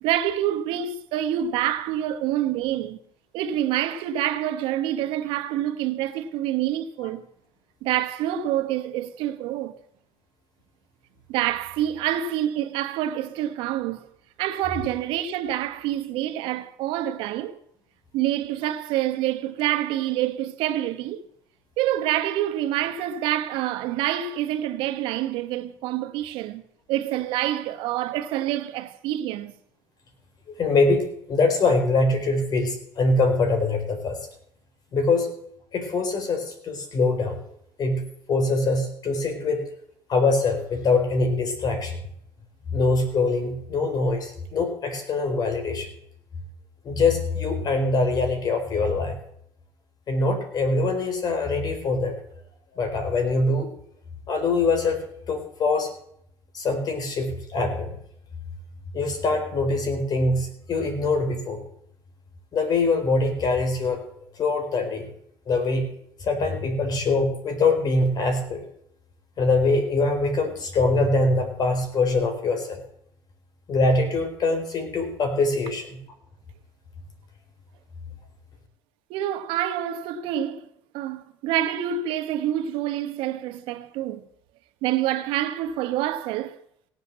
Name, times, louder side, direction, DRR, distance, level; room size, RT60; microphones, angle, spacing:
voice 1, 0.0-3.0 3.3-7.2 7.8-9.8 11.3-14.1 14.4-17.6 18.1-21.3 21.8-26.6 26.9-29.5 79.1-80.7 80.9-84.2 84.8-86.6, right 12 dB, 85° right, 1.2 m, -27 dB
voice 2, 30.5-34.2 34.9-35.3 35.7-37.4 37.8-39.6 40.1-42.0 42.7-45.9 46.8-49.2 50.1-52.2 52.7-53.7 54.3-55.0 55.3-55.9 56.5-57.9 58.9-61.6 62.5-64.0 64.4-65.1 65.5-65.9 66.2-68.6 69.4-72.8 73.7-76.0, left 3 dB, 50° left, 4.2 m, -23 dB
17.0 x 8.1 x 7.4 m
cardioid pair, 105°, 9 cm